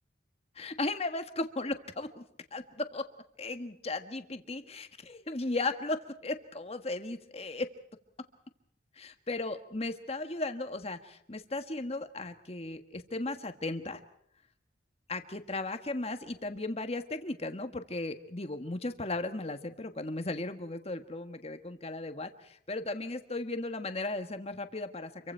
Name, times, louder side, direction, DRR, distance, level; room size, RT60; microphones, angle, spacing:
voice 1, 0.5-2.2 2.5-3.1 3.4-7.7 9.0-14.0 15.1-25.3, left 2 dB, 35° left, 8 dB, 1.5 m, -36 dB
28.0 x 23.5 x 4.6 m, 0.70 s
head